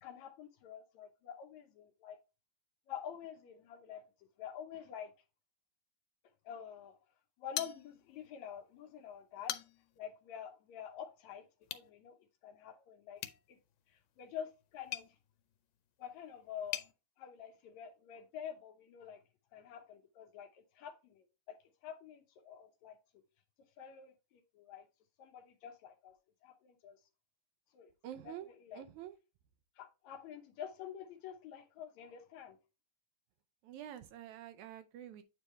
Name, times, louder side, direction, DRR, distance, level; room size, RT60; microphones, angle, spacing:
voice 1, 0.0-2.2 2.9-4.0 4.4-5.1 6.5-7.0 7.4-9.6 10.0-11.5 11.7-12.2 12.4-13.2 13.5-13.6 13.9-15.1 16.0-16.8 17.2-19.2 19.5-21.6 21.8-23.0 23.8-24.9 25.2-26.1 26.4-27.0 27.7-27.9 28.2-28.3 28.6-28.8 29.8-32.6, left 9 dB, 75° left, 1.9 m, -48 dB
sound 1, 7.5-8.3 8.7-8.8 9.3-10.0 11.6-11.9 13.2-16.9, left 13 dB, 90° left, 2.2 m, -44 dB
voice 2, 28.0-28.5 28.7-29.1 33.6-35.2, right 11 dB, 80° right, 1.8 m, -47 dB
9.1 x 3.3 x 4.2 m
omnidirectional pair, 3.7 m